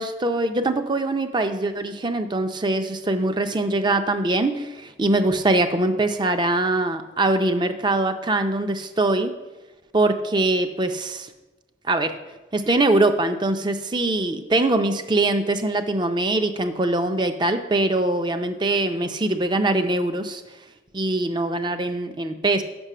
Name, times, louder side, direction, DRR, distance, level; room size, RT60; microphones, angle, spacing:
voice 1, 0.0-9.3 9.9-11.3 11.9-12.2 12.5-20.4 20.9-22.6, right 2 dB, 25° right, 8 dB, 0.5 m, -22 dB
6.1 x 5.8 x 6.6 m, 1.1 s
head